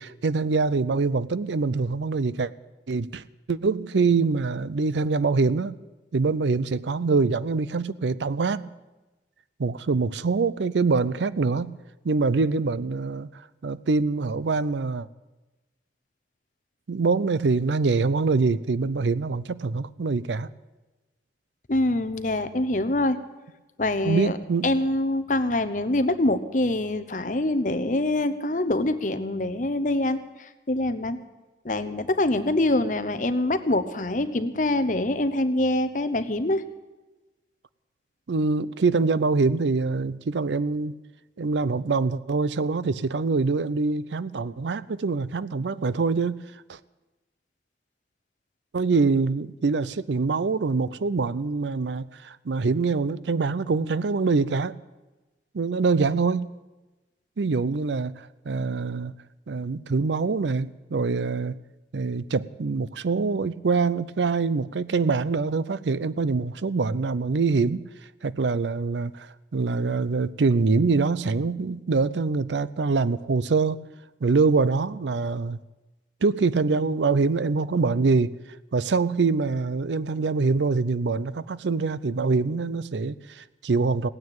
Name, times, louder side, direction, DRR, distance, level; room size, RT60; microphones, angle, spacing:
voice 1, 0.0-2.5 2.9-5.8 6.1-8.7 9.6-11.7 12.0-13.3 13.6-15.1 16.9-20.5 24.0-24.7 38.3-41.0 41.4-46.4 46.7-46.8 48.7-54.8 55.5-56.6 57.4-59.1 59.5-61.6 61.9-67.8 68.2-73.8 74.2-75.6 76.2-78.3 78.7-84.1, right 4 dB, 90° right, 18 dB, 0.5 m, -24 dB
voice 2, 21.7-23.2 23.8-24.4 24.6-31.2 31.6-36.6, left 1 dB, 45° left, 11 dB, 0.9 m, -25 dB
16.5 x 9.5 x 8.8 m, 1.1 s
head